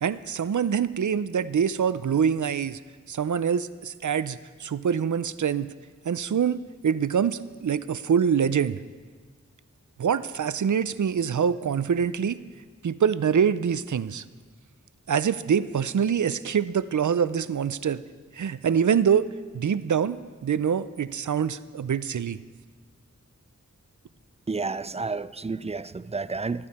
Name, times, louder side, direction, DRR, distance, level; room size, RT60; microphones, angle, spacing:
voice 1, 0.0-2.8 3.1-5.7 6.0-8.8 10.0-12.4 12.8-14.2 15.1-18.0 18.3-19.3 19.5-22.4, right 7 dB, 85° right, 0.4 m, -25 dB
voice 2, 24.5-26.7, right 4 dB, 20° right, 0.3 m, -31 dB
14.5 x 12.0 x 4.2 m
wide cardioid pair, 45°, 29 cm